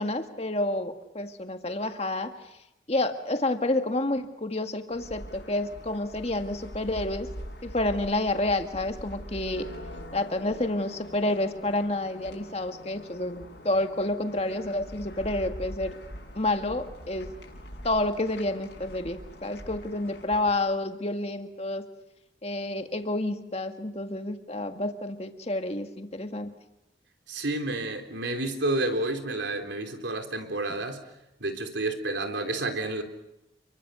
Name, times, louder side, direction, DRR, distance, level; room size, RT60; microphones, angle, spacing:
voice 1, 0.0-2.3 2.9-7.3 7.6-9.7 10.1-16.0 16.4-17.3 17.8-21.8 22.4-26.5, left 2 dB, 35° left, 6 dB, 1.9 m, -29 dB
sound 1, 4.9-20.5, equal, 65° left, 7.1 m, -43 dB
voice 2, 27.3-31.0 31.4-33.0, right 2 dB, 80° right, 5 dB, 3.7 m, -30 dB
29.5 x 23.5 x 6.8 m, 0.91 s
head